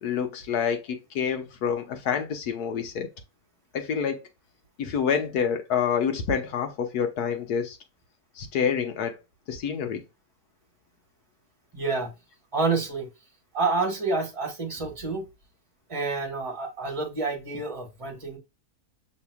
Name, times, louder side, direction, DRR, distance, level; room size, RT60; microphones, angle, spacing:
voice 1, 0.0-3.1 3.7-4.2 4.8-7.8 8.4-9.2 9.5-10.0, left 7 dB, 85° left, 1.5 m, -27 dB
voice 2, 11.7-12.1 12.5-13.1 13.5-15.3 15.9-18.4, right 3 dB, 20° right, 1.3 m, -28 dB
6.2 x 3.3 x 2.2 m
omnidirectional pair, 1.6 m